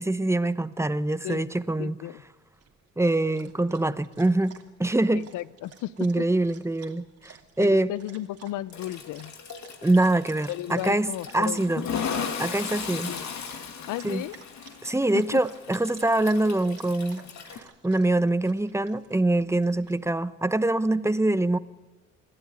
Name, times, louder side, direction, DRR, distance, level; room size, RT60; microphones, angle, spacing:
voice 1, 0.0-2.0 3.0-4.5 4.8-5.3 6.0-7.9 9.8-11.1 11.3-11.9 12.4-13.1 14.0-14.2 14.8-17.2 17.5-21.6, right 2 dB, 10° right, 14 dB, 0.9 m, -24 dB
voice 2, 1.8-2.2 5.1-5.9 6.2-6.3 7.6-9.3 10.5-12.3 13.1-13.2 13.9-14.3 15.3-15.4, left 14 dB, 85° left, 19 dB, 0.7 m, -34 dB
Dog, 2.5-19.9, right 7 dB, 50° right, 2.8 m, -54 dB
Toilet flush, 8.7-17.6, left 6 dB, 65° left, 2.6 m, -37 dB
26.5 x 12.0 x 9.6 m, 1.2 s
cardioid pair, 90°, 30 cm